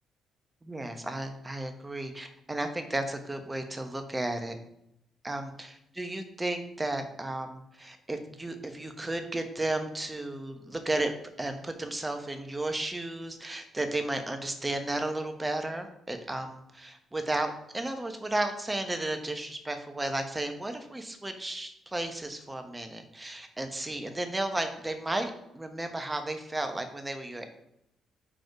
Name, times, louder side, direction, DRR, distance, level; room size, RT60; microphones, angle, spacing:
voice 1, 0.6-4.6 5.2-11.1 11.4-27.5, right 2 dB, 20° right, 6 dB, 1.1 m, -33 dB
4.8 x 4.2 x 4.6 m, 0.81 s
hypercardioid pair, 45°, 0 cm